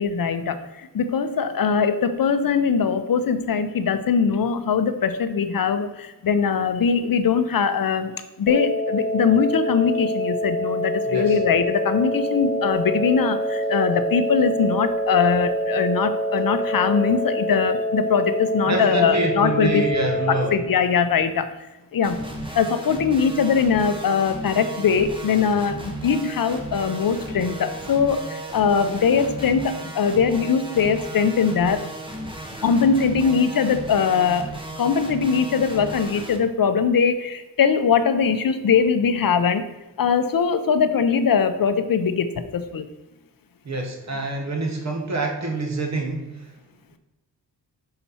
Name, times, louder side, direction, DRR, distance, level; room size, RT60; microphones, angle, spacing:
voice 1, 0.0-19.8 20.5-21.5 21.9-22.2 22.5-31.8 32.6-34.5 34.8-39.7 40.0-42.8, left 6 dB, 55° left, 10 dB, 0.6 m, -21 dB
sound 1, 8.5-20.5, equal, 10° left, 1.5 m, -26 dB
voice 2, 11.1-11.4 18.7-20.6 43.6-46.5, right 2 dB, 40° right, 2 dB, 1.2 m, -26 dB
sound 2, 22.0-36.4, right 1 dB, 10° right, 1.0 m, -35 dB
5.8 x 4.2 x 5.5 m, 1.1 s
wide cardioid pair, 110°, 42 cm